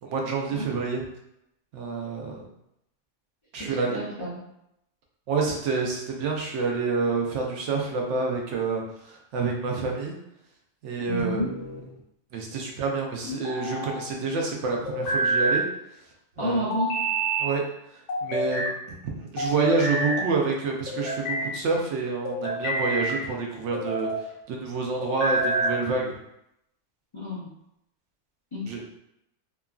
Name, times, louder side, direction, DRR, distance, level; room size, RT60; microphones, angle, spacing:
voice 1, 0.0-1.0 1.7-2.4 3.5-4.0 5.3-10.2 10.8-11.4 12.3-15.6 16.4-16.7 17.4-17.6 18.2-24.1 24.5-26.1 28.7-29.0, right 4 dB, 75° right, 0 dB, 0.9 m, -28 dB
voice 2, 3.6-4.4 11.1-11.5 16.4-17.0 27.1-27.5 28.5-28.7, equal, 40° left, -9 dB, 0.4 m, -30 dB
sound 1, 11.2-11.9 13.2-14.0 14.9-15.7 16.7-17.5 18.1-18.8 19.4-20.2 20.9-21.5 22.2-23.2 23.7-24.3 25.0-25.8, right 1 dB, 75° left, 1.0 m, -28 dB
2.9 x 2.4 x 2.3 m, 0.81 s
omnidirectional pair, 1.3 m